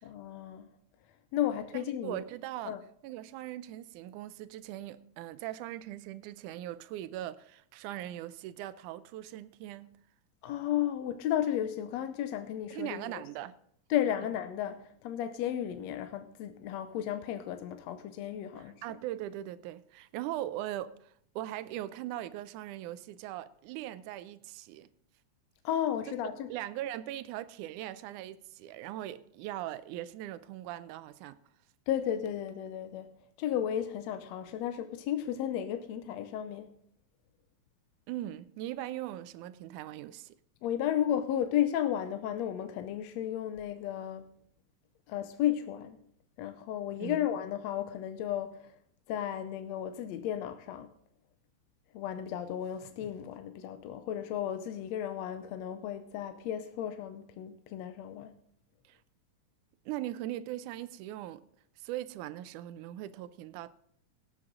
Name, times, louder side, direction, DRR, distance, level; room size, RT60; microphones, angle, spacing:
voice 1, 0.0-0.7 1.3-2.2 2.7-2.8 10.4-13.2 13.9-18.8 25.6-26.5 31.9-33.1 33.4-36.7 40.6-44.2 45.1-46.0 46.4-48.7 49.1-50.9 51.9-58.4, left 10 dB, 75° left, 1.7 m, -33 dB
voice 2, 2.0-2.8 3.0-10.0 12.7-13.6 18.6-24.9 26.5-31.4 38.1-40.4 47.0-47.3 58.9-59.0 59.9-61.4 61.8-63.7, right 13 dB, 90° right, 2.1 m, -40 dB
18.0 x 8.1 x 3.7 m
omnidirectional pair, 3.5 m